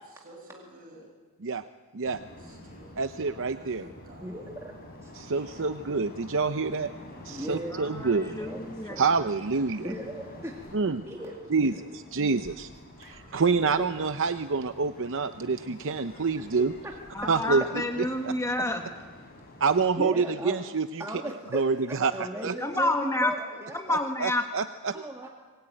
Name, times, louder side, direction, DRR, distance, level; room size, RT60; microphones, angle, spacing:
voice 1, 0.1-1.1 2.3-4.5 5.3-5.5 8.2-8.4 9.7-9.9 11.2-11.5 12.2-12.3 13.2-13.4, right 1 dB, 40° right, 1 dB, 7.6 m, -53 dB
sound 1, 2.0-19.9, left 1 dB, 45° left, 6.8 m, -47 dB
voice 2, 3.0-3.9 5.1-6.9 7.2-8.5 9.0-9.9 10.7-11.0 11.5-12.7 13.0-16.7 17.3-17.6 18.2-18.3 19.6-21.0 21.5-22.5 23.9-25.0, right 4 dB, 60° right, 10 dB, 0.7 m, -27 dB
voice 3, 4.2-5.1 7.3-7.9 8.4-9.0 9.8-11.7 13.6-13.9 16.3-16.4 16.8-16.9 20.0-20.6 21.0-23.8 24.9-25.3, right 1 dB, 15° right, 0 dB, 2.2 m, -38 dB
voice 4, 7.7-9.0 17.2-18.8 22.6-23.3 23.7-24.4, left 2 dB, 15° left, 4 dB, 1.7 m, -29 dB
25.5 x 20.5 x 9.1 m, 1.4 s
head